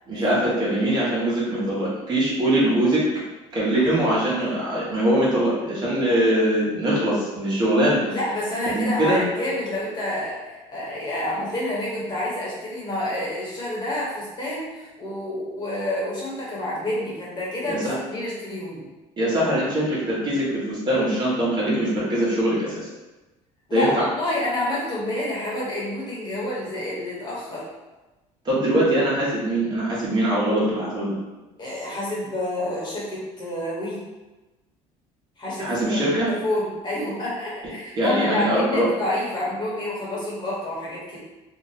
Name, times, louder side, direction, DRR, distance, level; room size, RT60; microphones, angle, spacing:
voice 1, 0.1-3.0 3.5-8.0 8.7-9.2 17.7-18.0 19.2-22.9 23.7-24.1 28.4-31.2 35.6-36.3 38.0-38.8, right 1 dB, 35° right, -7 dB, 1.2 m, -22 dB
voice 2, 8.1-18.8 23.7-27.6 31.6-34.0 35.4-41.2, left 1 dB, 35° left, -6 dB, 1.3 m, -28 dB
2.8 x 2.4 x 4.1 m, 1.1 s
cardioid pair, 135°, 14 cm